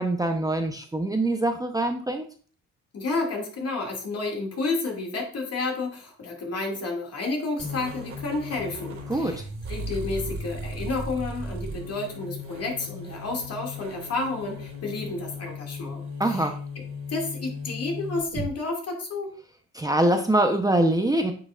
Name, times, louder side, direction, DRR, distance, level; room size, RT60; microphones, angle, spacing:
voice 1, 0.0-2.2 9.1-9.4 16.2-16.5 19.7-21.3, right 1 dB, 10° right, 5 dB, 0.8 m, -24 dB
voice 2, 2.9-9.4 9.7-16.0 16.3-16.5 17.1-19.3, left 3 dB, 55° left, 1 dB, 2.3 m, -31 dB
sound 1, 7.6-18.5, left 1 dB, 45° right, 2.5 m, -36 dB
9.0 x 6.0 x 2.5 m, 0.41 s
cardioid pair, 90°, 30 cm